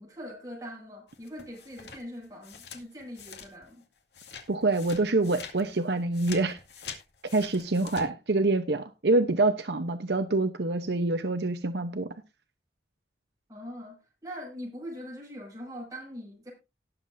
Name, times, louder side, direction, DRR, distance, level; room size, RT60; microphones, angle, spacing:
voice 1, 0.0-3.8 7.3-7.4 13.5-16.5, equal, 20° right, 6.5 m, -42 dB
sound 1, 1.1-3.8 4.1-8.0, left 6 dB, 75° left, 2.2 m, -45 dB
voice 2, 4.5-6.6 7.3-12.1, right 2 dB, 70° right, 0.9 m, -26 dB
18.5 x 7.5 x 2.7 m
head